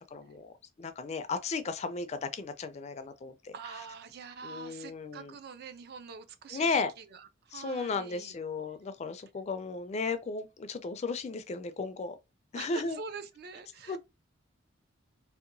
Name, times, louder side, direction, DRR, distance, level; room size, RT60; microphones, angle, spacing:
voice 1, 0.1-3.5 4.4-5.3 6.5-6.9 7.5-12.2 12.5-13.0 13.9-14.0, left 4 dB, 35° left, 0.3 m, -35 dB
voice 2, 3.5-8.4 12.6-14.0, right 5 dB, 55° right, 0.4 m, -45 dB
2.8 x 2.1 x 2.5 m
head